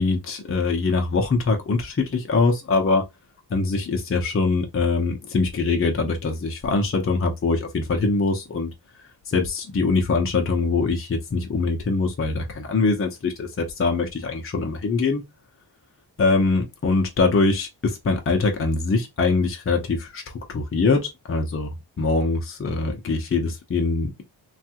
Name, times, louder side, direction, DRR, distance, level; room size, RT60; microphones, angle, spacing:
voice 1, 0.0-3.0 3.5-8.7 9.3-15.2 16.2-24.2, left 3 dB, 30° left, 0.7 m, -23 dB
3.2 x 2.3 x 2.8 m
wide cardioid pair, 115°, 41 cm